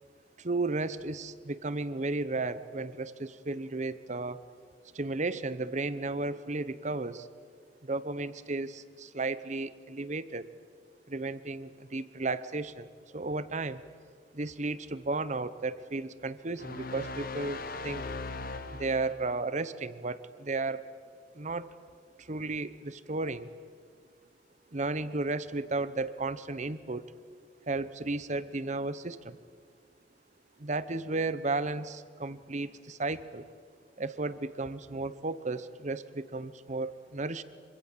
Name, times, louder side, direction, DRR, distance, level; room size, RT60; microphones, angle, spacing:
voice 1, 0.4-4.4 4.9-7.3 7.8-10.5 11.1-13.8 14.3-18.0 18.7-20.8 21.3-21.7 22.2-23.5 24.7-27.1 27.7-29.4 30.6-33.5 34.0-37.4, right 3 dB, 40° right, 14 dB, 0.9 m, -34 dB
sound 1, 16.6-19.3, left 3 dB, 50° left, 1.4 m, -39 dB
26.0 x 25.0 x 7.3 m, 2.1 s
head